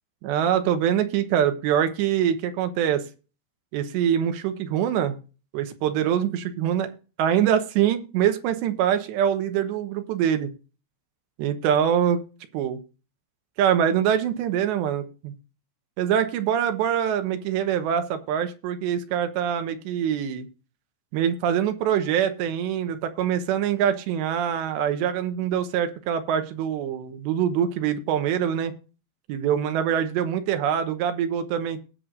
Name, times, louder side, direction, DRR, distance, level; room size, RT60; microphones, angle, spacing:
voice 1, 0.2-3.0 3.7-5.2 5.5-6.9 7.2-10.5 11.4-12.2 12.5-12.8 13.6-15.3 16.0-20.5 21.1-28.7 29.3-31.8, right 9 dB, 85° right, 8 dB, 3.3 m, -24 dB
19.5 x 7.5 x 2.5 m, 0.34 s
omnidirectional pair, 4.9 m